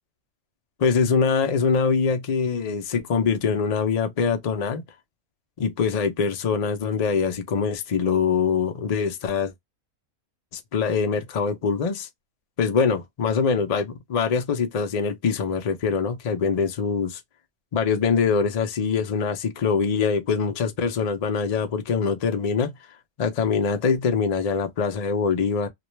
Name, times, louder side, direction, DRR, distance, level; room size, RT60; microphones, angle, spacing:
voice 1, 0.8-4.8 5.6-9.5 10.5-12.1 12.6-17.2 17.7-22.7 23.2-25.7, left 5 dB, 70° left, 0.3 m, -23 dB
2.4 x 2.2 x 3.0 m
omnidirectional pair, 1.5 m